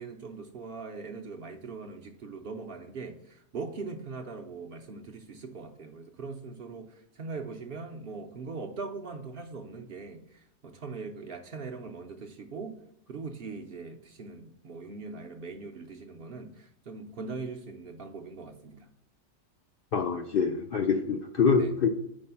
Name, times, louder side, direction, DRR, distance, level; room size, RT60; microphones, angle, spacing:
voice 1, 0.0-12.8 13.1-18.9 21.5-21.7, right 4 dB, 55° right, 3 dB, 0.7 m, -41 dB
voice 2, 19.9-21.9, left 5 dB, 65° left, 4 dB, 0.6 m, -25 dB
5.4 x 4.2 x 5.6 m, 0.75 s
omnidirectional pair, 1.4 m